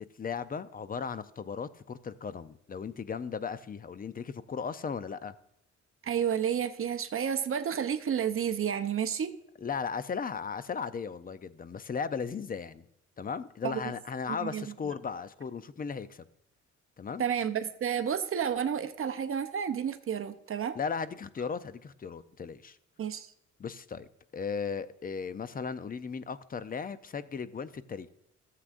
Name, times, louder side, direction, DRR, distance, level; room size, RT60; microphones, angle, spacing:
voice 1, 0.2-5.3 9.6-12.9 13.2-16.3 17.0-17.2 20.8-22.8 23.6-24.1 24.3-28.1, left 6 dB, 30° left, 14 dB, 0.6 m, -36 dB
voice 2, 6.0-9.4 13.6-13.8 14.3-14.9 17.2-20.8 23.0-23.3, right 8 dB, 45° right, 9 dB, 0.8 m, -31 dB
13.5 x 7.6 x 2.5 m, 0.81 s
cardioid pair, 90°, 30 cm